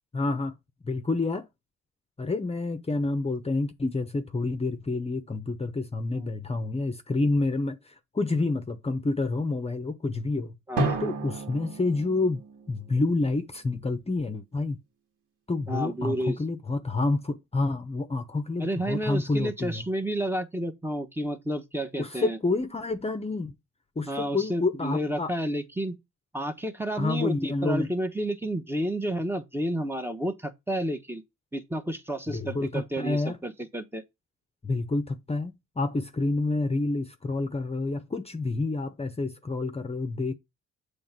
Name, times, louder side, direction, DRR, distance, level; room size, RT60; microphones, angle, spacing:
voice 1, 0.1-0.5 0.8-1.4 2.2-10.5 11.0-12.4 12.7-14.8 15.5-19.8 22.0-23.5 24.0-25.3 27.0-27.9 32.3-33.4 34.6-40.3, left 3 dB, 20° left, 0.9 m, -28 dB
voice 2, 10.7-11.0 15.7-16.4 18.6-22.4 24.1-26.0 26.3-31.2 31.5-34.0, right 1 dB, 5° right, 1.1 m, -31 dB
Drum, 10.8-13.5, right 2 dB, 75° right, 2.2 m, -32 dB
7.6 x 3.3 x 5.9 m
cardioid pair, 90°, 30 cm